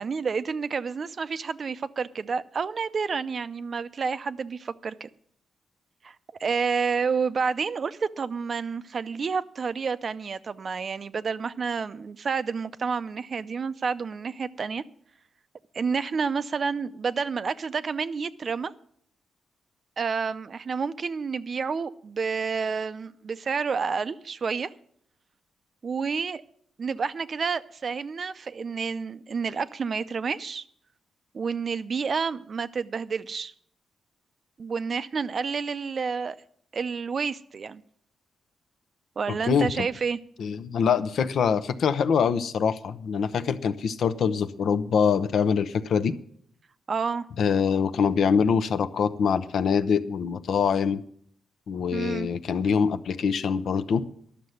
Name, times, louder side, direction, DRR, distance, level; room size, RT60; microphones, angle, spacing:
voice 1, 0.0-5.1 6.0-14.8 15.7-18.7 20.0-24.7 25.8-26.4 26.8-30.6 31.3-33.5 34.6-36.4 36.7-37.8 39.2-40.2 46.9-47.3 51.9-52.3, right 5 dB, 45° right, 0.5 m, -29 dB
voice 2, 39.3-39.9 40.4-46.1 47.4-51.0 51.7-54.1, left 6 dB, 70° left, 0.7 m, -24 dB
11.5 x 6.7 x 9.1 m
wide cardioid pair, 130°, 0 cm